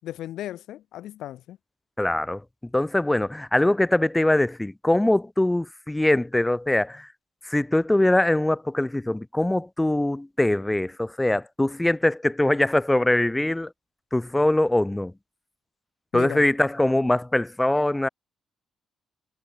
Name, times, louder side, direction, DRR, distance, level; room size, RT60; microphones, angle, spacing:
voice 1, 0.0-1.6 16.1-16.4, left 13 dB, 80° left, 6.3 m, -36 dB
voice 2, 2.0-2.4 2.7-7.1 7.5-13.7 14.1-15.1 16.1-18.1, left 1 dB, 10° left, 2.2 m, -22 dB
cardioid pair, 90°, 0 cm